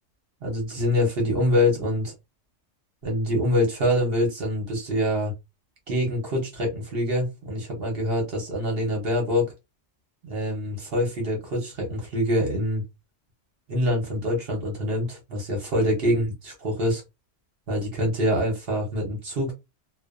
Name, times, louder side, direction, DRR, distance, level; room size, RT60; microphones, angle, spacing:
voice 1, 0.4-2.1 3.0-5.3 5.9-9.5 10.2-12.8 13.7-17.0 17.7-19.5, left 1 dB, 55° right, 1 dB, 1.1 m, -25 dB
2.4 x 2.3 x 2.4 m, 0.22 s
omnidirectional pair, 1.2 m